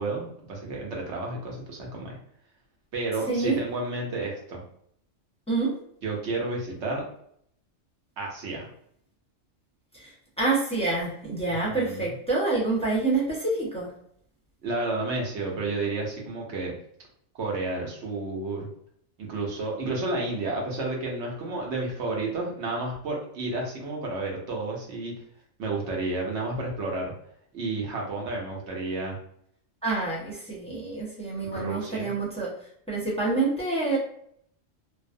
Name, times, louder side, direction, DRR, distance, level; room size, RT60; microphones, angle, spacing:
voice 1, 0.0-2.2 2.9-4.6 6.0-7.0 8.2-8.7 11.7-12.1 14.6-16.7 17.4-18.7 19.2-25.1 25.6-27.1 27.5-29.2 31.4-32.1, right 2 dB, 65° right, -1 dB, 1.0 m, -31 dB
voice 2, 3.3-3.6 5.5-5.7 9.9-10.1 10.4-13.9 29.8-32.5 32.9-34.0, right 3 dB, 5° left, -7 dB, 0.8 m, -27 dB
2.5 x 2.0 x 2.5 m, 0.67 s
omnidirectional pair, 1.3 m